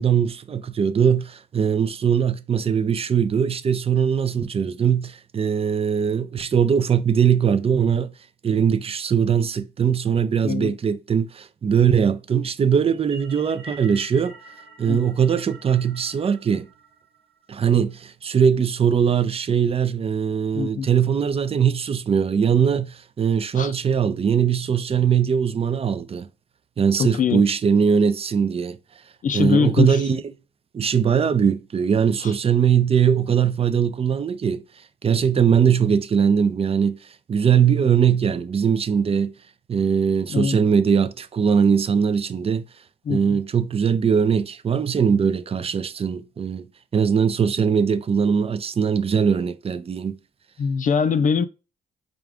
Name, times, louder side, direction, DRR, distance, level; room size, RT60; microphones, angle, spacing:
voice 1, 0.0-8.1 8.4-14.4 14.8-16.7 17.5-26.3 26.8-28.8 29.3-30.2 30.7-34.6 35.0-37.0 37.3-39.3 39.7-42.7 43.1-46.7 46.9-50.1, right 7 dB, 30° right, 0.4 m, -21 dB
voice 2, 10.4-10.7 14.9-15.0 20.5-20.9 23.5-23.7 26.9-27.5 29.2-30.1 32.2-32.3 40.3-40.6 43.0-43.4 50.6-51.5, left 6 dB, 40° left, 0.4 m, -23 dB
sound 1, 12.9-17.4, right 1 dB, 75° right, 0.9 m, -46 dB
4.7 x 2.4 x 3.4 m
cardioid pair, 90°, 20 cm